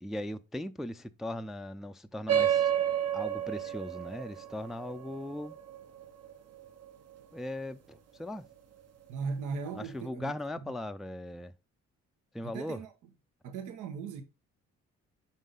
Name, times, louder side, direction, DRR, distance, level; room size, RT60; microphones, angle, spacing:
voice 1, 0.0-2.7 3.1-5.5 7.3-8.5 9.7-11.5 12.3-12.8, left 1 dB, ahead, 0.3 m, -39 dB
sound 1, 2.3-7.2, right 10 dB, 55° right, 0.8 m, -31 dB
voice 2, 9.1-10.3 12.4-12.9 13.4-14.2, right 5 dB, 90° right, 0.9 m, -38 dB
5.5 x 5.3 x 3.8 m
cardioid pair, 90°, 30 cm